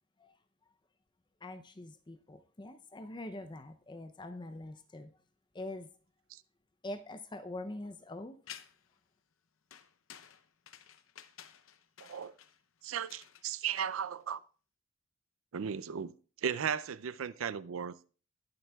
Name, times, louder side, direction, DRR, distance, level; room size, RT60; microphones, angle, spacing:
voice 1, 1.4-5.1 5.5-5.9 6.8-8.4, left 1 dB, 20° left, 0.5 m, -44 dB
sound 1, 8.5-9.0 9.7-14.2, left 9 dB, 85° left, 0.7 m, -53 dB
voice 2, 12.0-12.3 12.8-14.4 15.5-16.1 16.4-17.9, right 7 dB, 90° right, 0.5 m, -36 dB
20.0 x 7.7 x 2.3 m
head